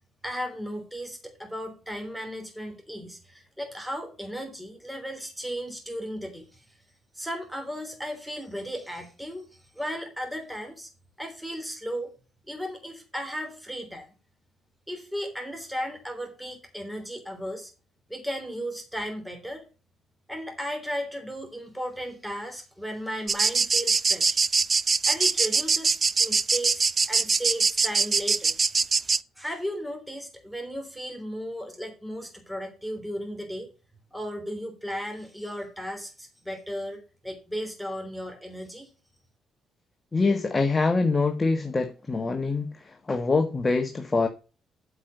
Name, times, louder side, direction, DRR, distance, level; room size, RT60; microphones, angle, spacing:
voice 1, 0.2-6.8 7.1-9.5 9.7-10.9 11.2-12.1 12.5-14.0 14.9-17.7 18.1-19.7 20.3-24.4 25.0-28.6 29.4-33.7 34.1-38.9, equal, ahead, 3.4 m, -35 dB
sound 1, 23.3-29.2, right 5 dB, 35° right, 0.4 m, -23 dB
voice 2, 40.1-44.3, left 3 dB, 25° left, 1.4 m, -25 dB
8.6 x 5.7 x 6.6 m
cardioid pair, 90°, 0 cm